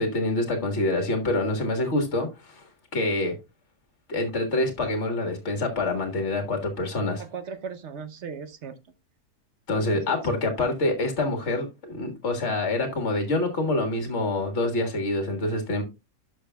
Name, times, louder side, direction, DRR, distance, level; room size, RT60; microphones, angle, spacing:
voice 1, 0.0-2.6 2.9-3.3 4.1-7.2 9.7-15.8, left 2 dB, 45° left, 2.0 m, -26 dB
voice 2, 7.2-8.8 10.1-10.3, right 6 dB, 55° right, 1.0 m, -37 dB
11.5 x 6.2 x 2.3 m
omnidirectional pair, 1.7 m